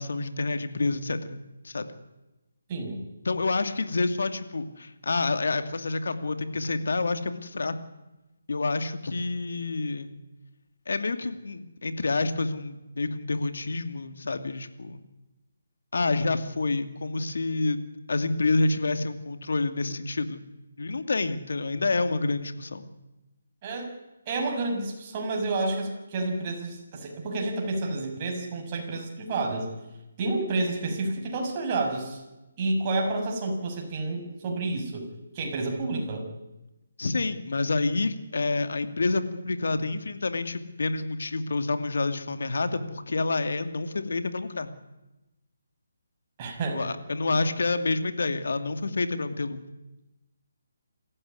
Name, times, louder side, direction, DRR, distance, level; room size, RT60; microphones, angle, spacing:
voice 1, 0.0-1.4 1.6-1.9 3.2-7.8 8.5-10.1 10.9-15.0 15.9-17.8 18.1-20.4 20.8-22.9 37.0-44.7 46.7-49.6, left 3 dB, 70° left, 9 dB, 2.5 m, -28 dB
voice 2, 2.7-3.0 23.6-23.9 24.2-29.7 30.2-32.2 32.6-35.1 35.3-36.3 46.4-46.8 47.3-47.4, right 2 dB, 30° right, 1 dB, 6.9 m, -30 dB
28.0 x 15.5 x 9.7 m, 1.0 s
figure-of-eight pair, 160°, 0 cm